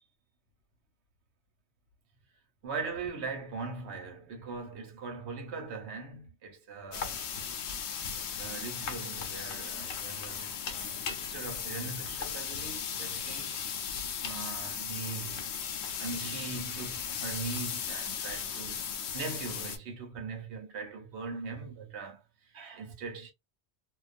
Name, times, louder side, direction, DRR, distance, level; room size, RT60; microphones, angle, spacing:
voice 1, 2.6-7.2 8.2-13.6 14.2-15.5 15.9-18.8 19.1-23.3, right 4 dB, 80° right, 1.0 m, -40 dB
sound 1, 6.9-19.8, left 7 dB, 80° left, 0.9 m, -37 dB
2.3 x 2.2 x 2.4 m
omnidirectional pair, 1.1 m